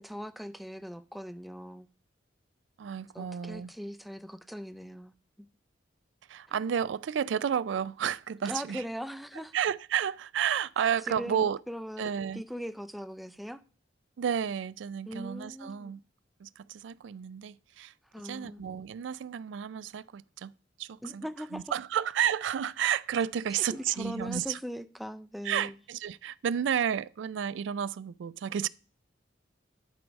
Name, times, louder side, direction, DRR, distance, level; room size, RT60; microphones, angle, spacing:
voice 1, 0.0-1.9 3.1-5.1 6.5-6.6 8.5-9.5 11.1-13.6 15.1-15.9 18.1-18.6 21.0-21.7 23.7-25.7, equal, ahead, 0.4 m, -40 dB
voice 2, 2.8-3.7 6.3-8.8 9.5-11.6 12.0-12.4 14.2-16.0 16.4-20.5 20.8-21.2 21.5-24.6 25.4-28.7, right 8 dB, 80° right, 0.3 m, -31 dB
11.0 x 4.7 x 5.1 m
head